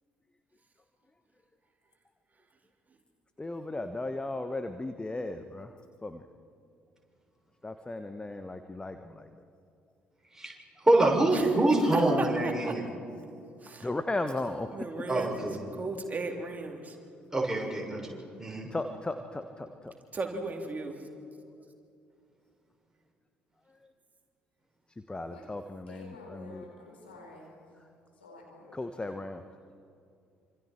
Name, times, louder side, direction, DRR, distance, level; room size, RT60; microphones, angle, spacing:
voice 1, 3.4-5.7 6.0-6.2 7.6-9.3 13.8-14.7 18.7-19.9 25.1-26.6 28.7-29.4, left 2 dB, 15° left, 8 dB, 1.2 m, -36 dB
voice 2, 10.8-12.8 15.1-15.6 17.3-18.7, right 1 dB, 10° right, -1 dB, 6.3 m, -25 dB
voice 3, 11.9-12.9 13.6-13.8 14.7-17.0 20.1-21.0, right 3 dB, 30° right, 2 dB, 3.2 m, -36 dB
voice 4, 25.9-27.5 28.2-28.8, left 2 dB, 85° left, -1 dB, 4.3 m, -49 dB
27.5 x 26.0 x 4.5 m, 2.6 s
figure-of-eight pair, 50°, 6 cm